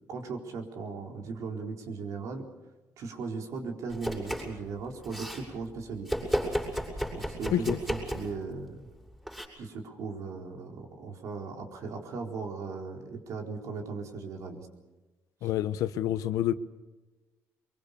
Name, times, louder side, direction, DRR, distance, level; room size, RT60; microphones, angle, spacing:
voice 1, 0.1-2.4 3.0-6.1 7.1-8.9 9.6-14.7 15.4-15.5, right 4 dB, 65° right, 2 dB, 4.2 m, -38 dB
Domestic sounds home sounds, 3.9-4.6 4.9-5.4 6.1-8.4 9.3-9.5, equal, 5° right, 6.8 m, -33 dB
voice 2, 15.4-16.5, left 11 dB, 80° left, 14 dB, 1.0 m, -28 dB
24.0 x 23.5 x 6.9 m, 1.2 s
cardioid pair, 110°, 6 cm